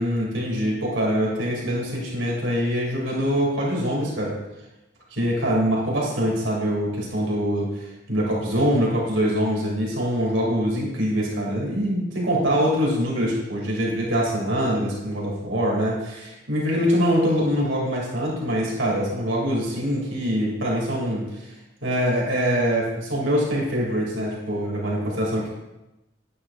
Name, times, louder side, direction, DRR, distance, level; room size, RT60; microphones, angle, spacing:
voice 1, 0.0-4.4 5.1-21.5 21.8-25.5, equal, 80° right, -3 dB, 2.8 m, -24 dB
9.8 x 9.7 x 2.6 m, 0.97 s
head